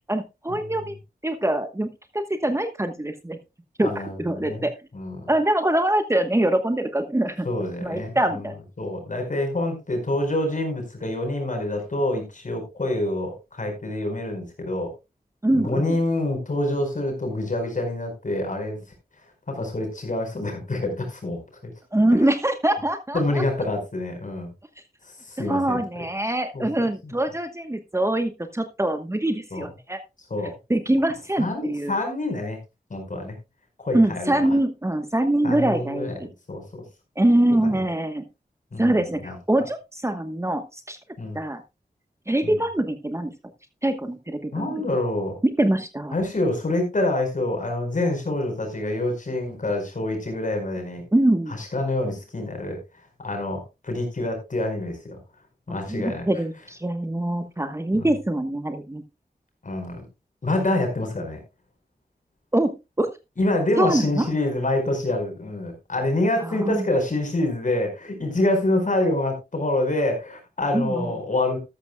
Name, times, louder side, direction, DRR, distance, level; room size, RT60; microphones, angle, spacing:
voice 1, 0.1-1.0 1.2-1.9 2.1-3.4 3.8-3.9 4.2-4.7 5.3-7.5 7.8-8.5 15.4-16.0 21.9-23.4 25.4-30.0 30.7-31.9 33.9-36.3 37.2-38.3 38.8-41.0 41.3-41.6 42.3-43.3 43.8-44.7 45.6-46.2 51.1-51.5 55.9-59.0 62.5-63.1 63.8-64.3 66.5-66.8 70.7-71.1, right 1 dB, 20° right, 8 dB, 1.1 m, -23 dB
voice 2, 3.8-4.6 4.9-5.3 7.4-8.5 8.8-14.9 15.5-18.8 19.5-21.7 23.1-24.5 25.2-25.8 26.5-26.7 27.0-27.1 29.5-29.6 30.3-30.5 31.4-32.6 32.9-33.4 33.8-34.4 35.4-36.2 36.5-36.8 37.7-37.8 38.7-39.3 41.2-41.4 42.4-42.6 44.5-45.4 46.1-51.0 51.5-52.8 53.2-55.2 55.7-56.3 57.9-58.1 59.6-60.0 60.4-61.4 63.4-71.6, left 1 dB, 55° left, 4 dB, 4.8 m, -26 dB
13.0 x 12.5 x 2.3 m, 0.24 s
wide cardioid pair, 90°, 16 cm